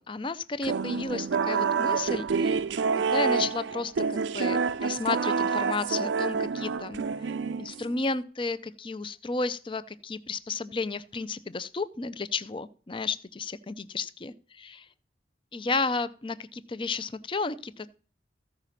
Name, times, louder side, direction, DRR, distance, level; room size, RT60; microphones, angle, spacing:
voice 1, 0.0-2.6 2.9-7.3 7.6-14.8 15.5-17.9, left 4 dB, 25° left, 15 dB, 0.5 m, -33 dB
sound 1, 0.6-8.0, right 5 dB, 80° right, 0.5 m, -28 dB
14.5 x 5.0 x 5.8 m, 0.41 s
head